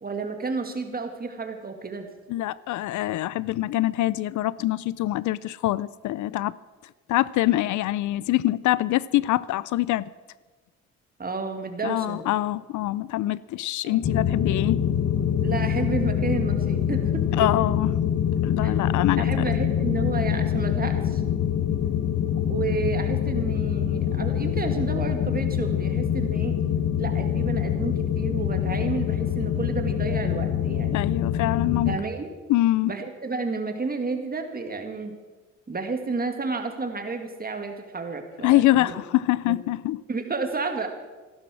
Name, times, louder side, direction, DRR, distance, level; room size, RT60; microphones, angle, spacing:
voice 1, 0.0-2.1 11.2-12.3 13.8-14.0 15.4-17.3 18.6-18.7 19.2-21.2 22.5-26.6 27.0-31.0 31.9-32.3 32.8-35.2 35.7-38.9 39.5-39.6 40.1-40.9, right 4 dB, 30° right, 2.1 m, -31 dB
voice 2, 2.3-6.6 7.1-10.1 11.8-14.8 17.4-17.9 18.4-19.4 30.9-31.9 32.5-32.9 38.4-40.0, left 15 dB, 75° left, 0.5 m, -24 dB
sound 1, 14.0-32.0, left 9 dB, 55° left, 1.1 m, -25 dB
15.0 x 12.0 x 6.2 m
cardioid pair, 90°, 30 cm